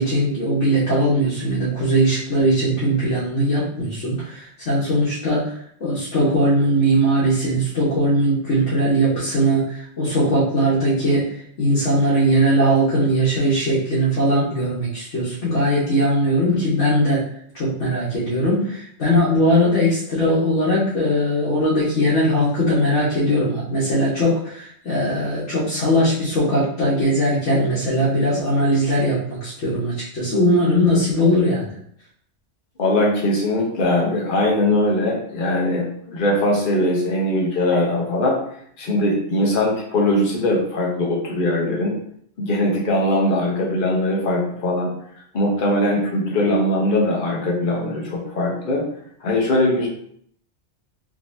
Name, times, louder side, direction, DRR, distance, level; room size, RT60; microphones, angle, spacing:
voice 1, 0.0-5.5 5.8-11.3 11.6-17.2 17.5-31.7, equal, 75° left, -9 dB, 1.4 m, -20 dB
voice 2, 32.8-38.4 38.8-42.0 42.4-44.9 45.3-48.9 49.2-49.9, left 1 dB, 50° left, -2 dB, 1.0 m, -21 dB
3.8 x 2.9 x 2.6 m, 0.66 s
omnidirectional pair, 1.2 m